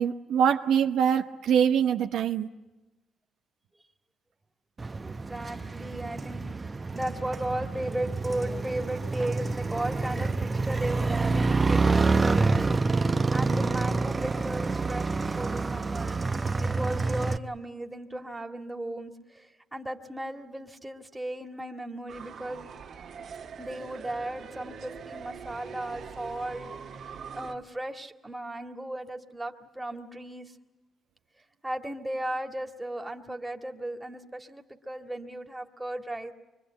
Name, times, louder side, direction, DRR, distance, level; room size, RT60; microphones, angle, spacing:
voice 1, 0.0-2.5, right 8 dB, 80° right, 0.9 m, -24 dB
Motorcycle, 4.8-17.4, right 3 dB, 25° right, 0.9 m, -27 dB
voice 2, 5.0-16.2 16.6-22.7 23.6-26.7 27.3-30.5 31.6-36.3, right 1 dB, 10° right, 2.1 m, -36 dB
sound 1, 22.1-27.6, right 6 dB, 65° right, 2.1 m, -43 dB
24.5 x 24.0 x 8.9 m
cardioid pair, 90°, 0 cm